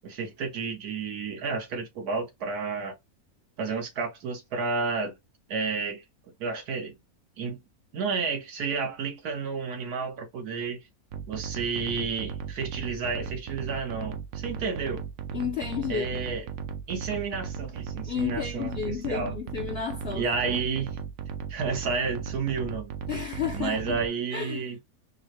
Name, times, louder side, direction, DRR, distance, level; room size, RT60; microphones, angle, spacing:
voice 1, 0.0-2.9 3.6-5.1 5.5-6.0 6.4-6.9 7.4-7.6 7.9-10.8 11.3-15.0 15.9-16.4 16.9-19.3 20.1-21.0 21.5-22.9 23.5-24.8, right 5 dB, 85° right, 1.5 m, -31 dB
sound 1, 11.1-24.1, right 7 dB, 70° right, 1.0 m, -36 dB
voice 2, 15.3-16.3 18.1-20.6 23.1-24.0 24.3-24.7, left 8 dB, 55° left, 0.7 m, -32 dB
4.6 x 2.1 x 2.9 m
omnidirectional pair, 1.6 m